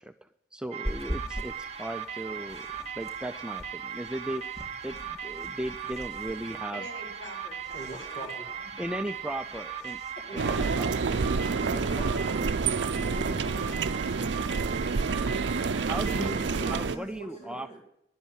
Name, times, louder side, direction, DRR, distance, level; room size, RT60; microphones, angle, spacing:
voice 1, 0.0-2.7 2.9-6.9 8.8-10.0 10.3-10.9 15.8-17.7, right 1 dB, 5° right, 8 dB, 0.4 m, -37 dB
sound 1, 0.7-16.8, right 7 dB, 40° right, 1.1 m, -38 dB
sound 2, 0.8-17.2, equal, 20° right, 2.5 m, -45 dB
voice 2, 6.7-7.8 8.1-8.3 10.3-10.8, equal, 65° left, -1 dB, 4.9 m, -44 dB
voice 3, 7.7-8.7 11.5-14.2 16.1-17.8, right 1 dB, 40° left, 0 dB, 2.0 m, -42 dB
sound 3, 10.4-17.0, right 4 dB, 80° right, 0.5 m, -28 dB
11.5 x 8.3 x 8.9 m, 0.80 s
head